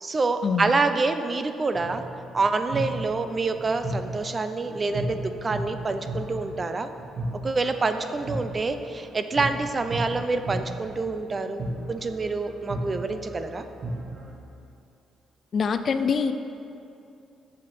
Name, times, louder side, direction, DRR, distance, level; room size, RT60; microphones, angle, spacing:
voice 1, 0.0-2.0 2.3-6.9 7.4-11.6 11.9-13.6, right 3 dB, 35° right, 9 dB, 0.6 m, -27 dB
sound 1, 1.7-14.3, right 1 dB, 55° right, 1.5 m, -35 dB
voice 2, 15.5-16.3, left 5 dB, 50° left, 9 dB, 0.5 m, -24 dB
7.3 x 5.9 x 7.7 m, 2.6 s
cardioid pair, 90°, 0 cm